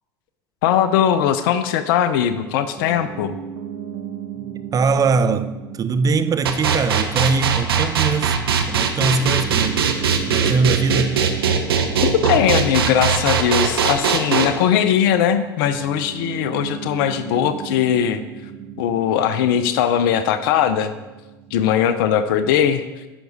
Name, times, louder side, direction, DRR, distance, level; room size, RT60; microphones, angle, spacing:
voice 1, 0.6-3.4 12.0-18.2 18.8-20.9 21.5-22.8, left 9 dB, 65° left, 0.7 m, -19 dB
Piano, 2.8-22.2, right 8 dB, 55° right, 0.9 m, -37 dB
voice 2, 4.7-8.4 8.7-9.9 10.3-11.2, right 4 dB, 30° right, 0.6 m, -21 dB
sound 1, 6.4-14.4, right 7 dB, 80° right, 0.8 m, -19 dB
10.0 x 6.1 x 4.1 m
hypercardioid pair, 75°, 12 cm